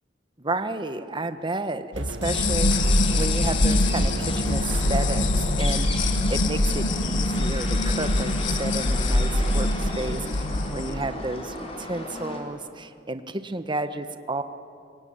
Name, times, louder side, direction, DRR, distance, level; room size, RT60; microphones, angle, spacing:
voice 1, 0.4-14.4, right 2 dB, 25° right, 10 dB, 1.2 m, -32 dB
sound 1, 1.9-6.1, right 1 dB, 75° right, 2.1 m, -33 dB
sound 2, 2.2-10.8, left 2 dB, 80° left, 1.5 m, -23 dB
sound 3, 2.2-12.4, left 1 dB, 30° left, 4.2 m, -36 dB
25.5 x 23.0 x 9.0 m, 2.4 s
head